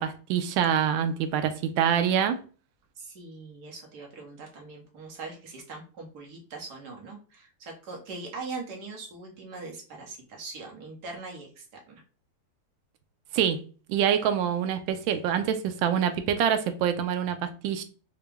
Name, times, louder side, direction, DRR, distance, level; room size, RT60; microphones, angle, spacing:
voice 1, 0.0-2.4 13.3-13.6 13.9-17.8, right 8 dB, 80° right, 1.3 m, -25 dB
voice 2, 3.0-12.0, right 3 dB, 60° right, 1.5 m, -41 dB
4.9 x 2.1 x 3.4 m
omnidirectional pair, 2.2 m